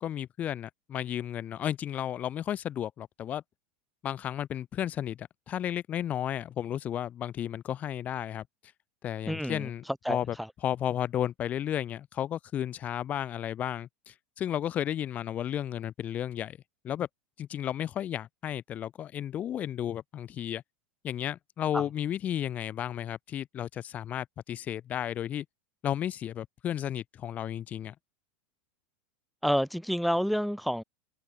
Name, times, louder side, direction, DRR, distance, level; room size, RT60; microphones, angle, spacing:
voice 1, 0.0-3.4 4.0-8.4 9.0-10.4 10.6-16.6 16.8-17.1 17.4-20.6 21.0-25.5 25.8-27.9, left 10 dB, 25° left, 2.2 m, -33 dB
voice 2, 9.3-9.7 10.0-10.2 21.7-21.8 29.4-30.8, equal, ahead, 1.1 m, -28 dB
supercardioid pair, 170°, 6 cm